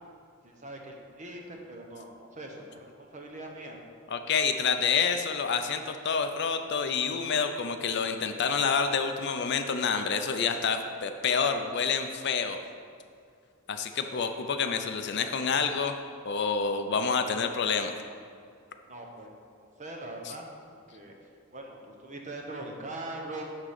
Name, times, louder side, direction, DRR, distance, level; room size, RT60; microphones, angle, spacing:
voice 1, 0.4-3.8 18.9-20.6 20.9-21.1 21.5-23.4, right 2 dB, 35° right, 1 dB, 1.1 m, -42 dB
voice 2, 4.1-12.6 13.7-15.9 16.2-17.9, left 5 dB, 50° left, 7 dB, 0.5 m, -28 dB
11.0 x 3.7 x 6.7 m, 2.3 s
head